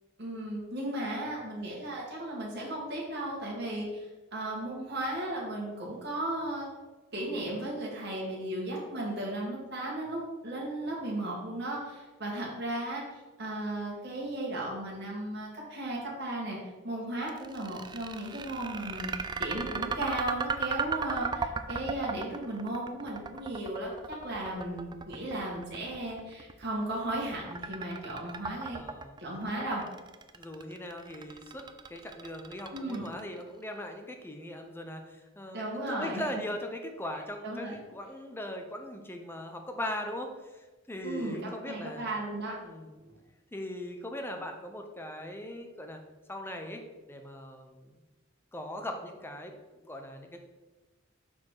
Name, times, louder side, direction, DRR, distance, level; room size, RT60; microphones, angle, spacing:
voice 1, 0.2-6.7 7.1-16.6 16.8-28.8 29.2-29.8 32.7-33.0 35.5-36.2 37.4-37.7 41.0-42.5 43.0-43.2, right 1 dB, 55° right, -4 dB, 2.0 m, -35 dB
sound 1, 17.3-33.4, right 5 dB, 20° right, 0.3 m, -36 dB
voice 2, 28.7-29.2 30.3-42.1 42.6-43.0 43.5-46.0 46.3-47.9 48.5-50.5, left 1 dB, 10° left, 4 dB, 0.7 m, -40 dB
6.1 x 4.3 x 4.8 m, 1.2 s
head